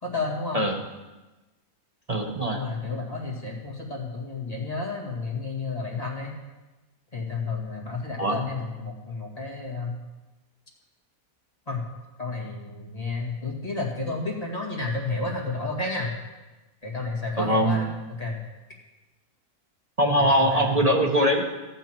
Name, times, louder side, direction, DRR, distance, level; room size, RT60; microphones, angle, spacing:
voice 1, 0.0-0.6 2.5-6.4 7.1-10.0 11.7-11.8 12.2-16.2 16.8-18.4 20.2-20.8, left 3 dB, 25° left, -3 dB, 2.3 m, -31 dB
voice 2, 2.1-2.6 8.2-8.4 17.4-17.9 20.0-21.4, equal, 30° right, 1 dB, 1.0 m, -22 dB
13.5 x 8.9 x 4.5 m, 1.1 s
omnidirectional pair, 1.6 m